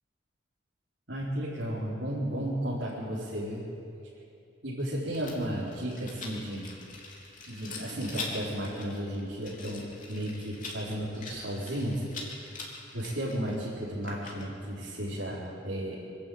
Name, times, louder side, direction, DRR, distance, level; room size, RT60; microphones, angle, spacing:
voice 1, 1.1-3.6 4.6-6.6 7.5-12.0 12.9-16.0, equal, 85° right, -7 dB, 4.2 m, -34 dB
Rattle, 5.1-14.7, left 3 dB, 45° left, 3.6 m, -43 dB
25.5 x 12.0 x 8.8 m, 2.6 s
head